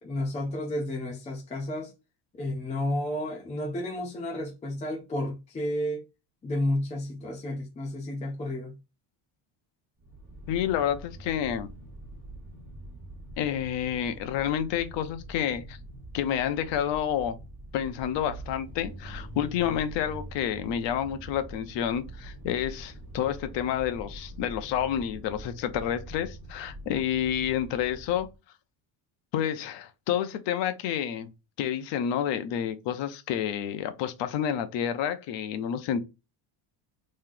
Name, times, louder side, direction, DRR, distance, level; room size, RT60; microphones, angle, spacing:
voice 1, 0.0-1.9 2.3-6.1 6.4-8.8, left 1 dB, 15° left, 0.5 m, -31 dB
sound 1, 10.0-28.3, right 1 dB, 15° right, 1.1 m, -44 dB
voice 2, 10.5-11.7 13.4-15.8 16.1-17.4 17.7-28.3 29.3-31.3 31.6-36.0, left 9 dB, 65° left, 0.8 m, -29 dB
3.1 x 2.8 x 3.8 m
cardioid pair, 175°, 48 cm